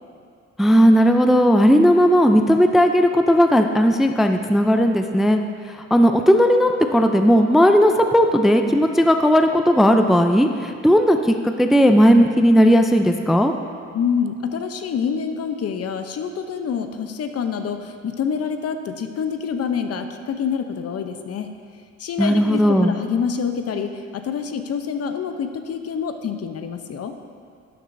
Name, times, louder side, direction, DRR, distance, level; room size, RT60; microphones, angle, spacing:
voice 1, 0.6-5.4 5.9-13.5 22.2-22.9, equal, ahead, 6 dB, 0.4 m, -16 dB
voice 2, 13.9-21.5 22.0-27.1, left 6 dB, 55° left, 7 dB, 0.7 m, -26 dB
12.0 x 9.2 x 2.7 m, 2.2 s
cardioid pair, 90°, 30 cm